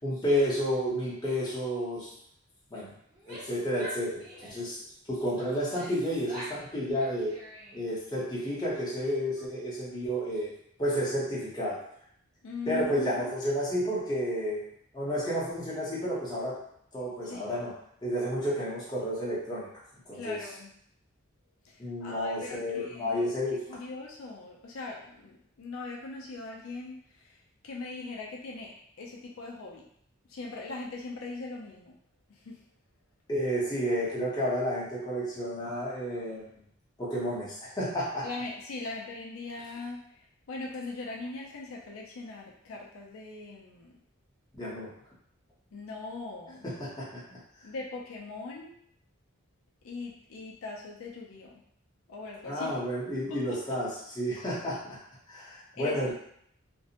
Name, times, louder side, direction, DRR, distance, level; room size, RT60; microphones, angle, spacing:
voice 1, 0.0-2.1 2.7-2.9 3.3-4.8 5.1-7.3 7.7-10.5 10.8-11.8 12.7-14.7 14.9-16.6 16.9-17.7 18.0-19.7 20.1-20.4 21.8-23.6 33.3-36.5 37.0-38.3 44.6-44.9 46.6-47.4 52.5-55.0 55.3-56.1, equal, 20° left, -8 dB, 0.7 m, -31 dB
Female speech woman speaking / Yell, 3.1-4.7 5.3-6.6 6.9-7.9, right 1 dB, 35° right, 0.8 m, -45 dB
voice 2, 12.4-13.6 17.3-17.7 20.1-20.7 21.6-23.3 23.7-29.9 30.3-32.0 32.3-32.6 38.2-43.9 45.7-46.7 47.6-48.8 49.8-51.6 52.1-52.7 53.3-53.6 55.7-56.1, left 3 dB, 75° left, -1 dB, 0.4 m, -41 dB
2.5 x 2.0 x 2.8 m, 0.69 s
head